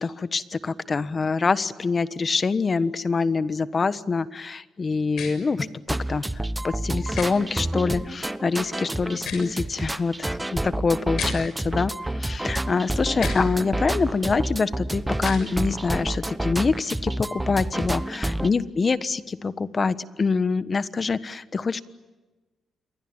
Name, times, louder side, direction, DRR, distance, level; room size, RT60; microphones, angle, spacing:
voice 1, 0.0-6.3 6.6-21.8, left 4 dB, 35° left, 14 dB, 1.3 m, -25 dB
sound 1, 5.1-5.3 7.1-7.3 9.1-9.5 11.1-11.3 13.1-13.4 15.2-15.4, left 6 dB, 70° left, 7.0 m, -32 dB
sound 2, 5.6-18.5, right 1 dB, 10° right, 1.1 m, -29 dB
28.0 x 24.0 x 8.9 m, 1.2 s
cardioid pair, 105°, 0 cm